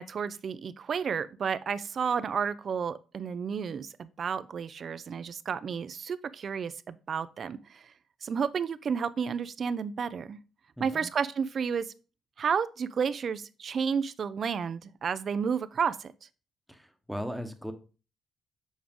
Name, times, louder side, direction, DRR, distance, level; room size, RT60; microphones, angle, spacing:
voice 1, 0.0-7.8 8.2-10.4 10.8-11.9 12.4-16.1, right 6 dB, 50° right, 0.4 m, -31 dB
voice 2, 16.7-17.7, equal, ahead, 1.0 m, -37 dB
7.3 x 4.6 x 3.6 m
cardioid pair, 90°, 0 cm